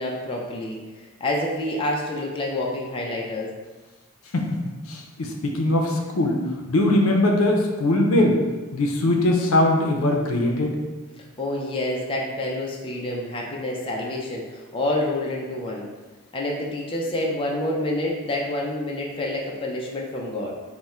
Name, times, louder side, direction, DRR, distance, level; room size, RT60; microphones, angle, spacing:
voice 1, 0.0-3.5 11.4-15.9 16.3-20.5, left 1 dB, 25° left, -2 dB, 0.4 m, -28 dB
voice 2, 4.9-6.4 6.7-8.4 8.7-10.8, left 1 dB, 75° left, 1 dB, 0.5 m, -21 dB
3.5 x 2.1 x 4.2 m, 1.3 s
head